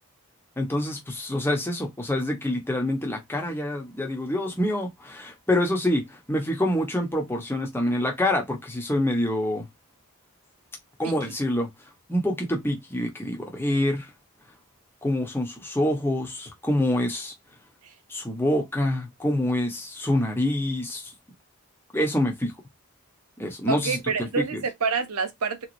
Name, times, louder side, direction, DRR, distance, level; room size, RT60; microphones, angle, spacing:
voice 1, 0.6-9.7 11.0-11.7 12.1-14.1 15.0-17.3 18.1-21.1 21.9-22.5 23.4-24.0 24.5-24.6, left 1 dB, 10° left, 0.9 m, -26 dB
voice 2, 11.0-11.4 17.8-17.9 23.7-25.7, right 5 dB, 85° right, 0.8 m, -28 dB
3.7 x 3.0 x 2.6 m
head